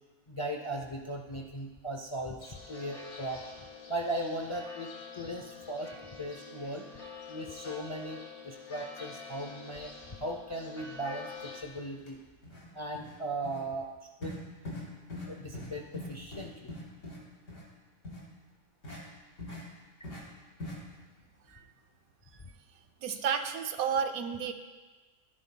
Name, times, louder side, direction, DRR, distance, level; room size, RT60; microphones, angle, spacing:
voice 1, 0.3-3.4 3.9-4.9 5.2-5.9 6.2-6.8 7.3-9.9 10.2-12.2 12.7-13.9 14.2-14.3 15.3-16.7 23.1-23.2, right 1 dB, 35° left, 2 dB, 0.5 m, -37 dB
sound 1, 2.4-11.6, left 5 dB, 50° left, 2.0 m, -47 dB
sound 2, 12.0-12.1 12.4-12.7 12.9-13.2 13.4-13.6 14.2-14.4 14.7-14.8 15.1-15.3 15.5-15.7 15.9-17.2 17.5-17.6 18.0-18.2 18.8-19.0 19.4-19.6 20.0-20.2 20.6-20.8, left 2 dB, 85° left, 3.4 m, -41 dB
voice 2, 23.0-24.5, right 7 dB, 85° right, 7 dB, 1.2 m, -31 dB
16.0 x 9.8 x 2.2 m, 1.3 s
omnidirectional pair, 1.4 m